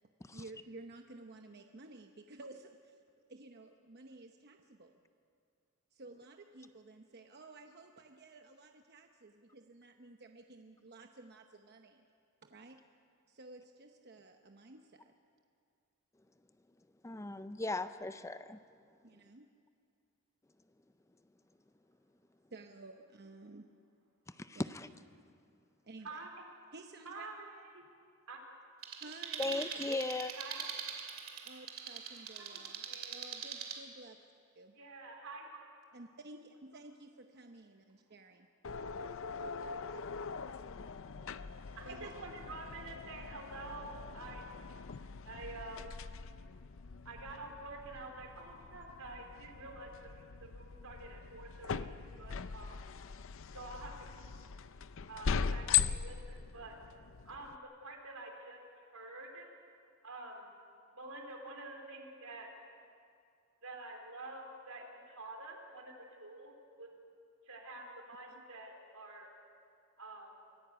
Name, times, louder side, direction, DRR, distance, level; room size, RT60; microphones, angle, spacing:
voice 1, 0.3-3.0 3.3-5.0 5.9-12.0 12.4-12.8 13.3-15.1 19.0-19.5 22.5-23.7 25.8-26.2 26.7-27.3 29.0-29.5 31.4-34.2 34.5-34.8 35.9-38.5 41.8-42.1 68.3-68.4, right 2 dB, 50° right, 0.9 m, -53 dB
voice 2, 17.0-18.6 24.4-24.9 29.4-30.3, left 2 dB, 15° left, 0.5 m, -37 dB
voice 3, 26.0-26.4 27.0-27.8 28.3-28.4 30.4-30.6 32.4-33.1 34.7-35.5 41.8-44.4 45.2-45.9 47.1-52.8 53.5-53.9 55.1-56.8 57.3-58.6 58.9-59.5 60.0-60.5 60.9-62.5 63.6-66.9 67.5-69.3 70.0-70.3, right 2 dB, 85° right, 3.8 m, -48 dB
sound 1, 28.8-33.8, right 7 dB, 65° right, 2.6 m, -43 dB
sound 2, 37.9-38.4 39.6-39.7 40.6-40.7 41.0-42.3, right 2 dB, 25° right, 4.2 m, -64 dB
sound 3, 38.6-57.6, left 7 dB, 60° left, 0.6 m, -40 dB
24.5 x 16.0 x 8.1 m
head